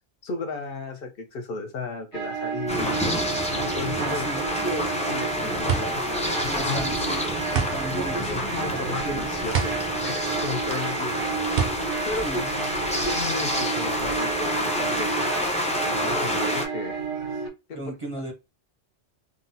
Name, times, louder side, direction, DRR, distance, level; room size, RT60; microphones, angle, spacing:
voice 1, 0.2-3.0 3.6-6.0 6.4-6.8 7.9-11.3 12.1-12.5 13.0-15.2 15.8-17.0 17.7-17.8, left 3 dB, 65° left, 0.7 m, -34 dB
sound 1, 2.1-17.5, right 6 dB, 80° right, 1.2 m, -32 dB
sound 2, 2.7-16.7, left 1 dB, 10° left, 0.3 m, -28 dB
voice 2, 4.0-4.4 6.4-7.2 7.5-9.3 12.2-12.5 17.7-18.3, right 1 dB, 35° right, 0.6 m, -35 dB
sound 3, 5.7-13.2, right 7 dB, 60° right, 0.8 m, -30 dB
3.7 x 2.1 x 2.6 m
omnidirectional pair, 1.2 m